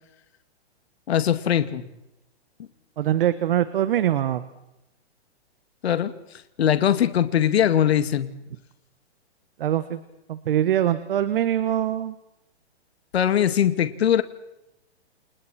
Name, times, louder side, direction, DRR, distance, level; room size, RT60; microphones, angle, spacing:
voice 1, 1.1-1.9 5.8-6.1 6.6-8.3 13.1-14.2, left 10 dB, 70° left, 10 dB, 2.3 m, -21 dB
voice 2, 3.0-4.4 9.6-10.0 10.3-12.1, right 11 dB, 55° right, 12 dB, 1.6 m, -23 dB
30.0 x 28.0 x 4.5 m, 0.90 s
hypercardioid pair, 165°, 33 cm